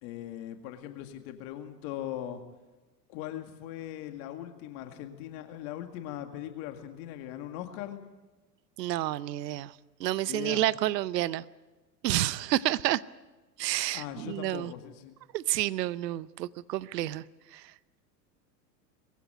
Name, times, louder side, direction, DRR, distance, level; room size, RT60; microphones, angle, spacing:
voice 1, 0.0-2.4 3.1-8.0 10.2-10.6 13.9-15.2, left 12 dB, 50° left, 6 dB, 2.2 m, -40 dB
voice 2, 8.8-9.7 10.0-11.4 12.0-13.0 13.6-14.7 15.3-17.2 17.5-17.6, right 15 dB, 75° right, 19 dB, 0.8 m, -29 dB
21.5 x 16.0 x 9.3 m, 1.2 s
hypercardioid pair, 100°, 50 cm